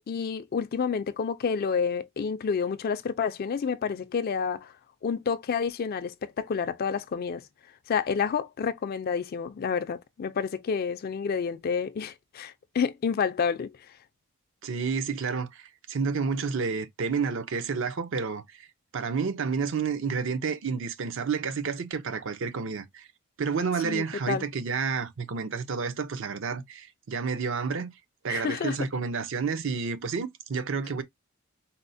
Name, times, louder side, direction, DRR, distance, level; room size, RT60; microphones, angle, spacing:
voice 1, 0.1-4.7 5.0-7.4 7.9-13.7 23.8-24.4 28.3-28.8, left 6 dB, 45° left, 0.3 m, -29 dB
voice 2, 14.6-18.7 18.9-23.1 23.4-27.9 28.2-31.0, right 5 dB, 60° right, 0.5 m, -30 dB
4.1 x 2.0 x 2.6 m
head